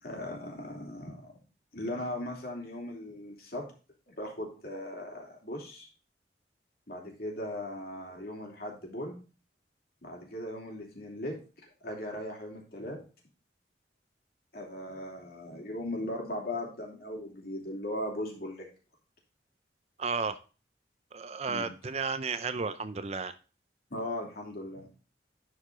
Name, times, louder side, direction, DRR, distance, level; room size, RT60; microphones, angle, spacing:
voice 1, 0.0-1.2 1.7-3.7 4.1-5.9 6.9-9.2 10.0-11.4 11.8-13.0 14.5-18.7 21.5-21.7 23.9-24.9, left 1 dB, 60° left, -1 dB, 2.9 m, -38 dB
voice 2, 20.0-20.4 21.1-23.3, right 4 dB, 35° right, 12 dB, 0.5 m, -33 dB
11.5 x 4.8 x 3.7 m, 0.34 s
head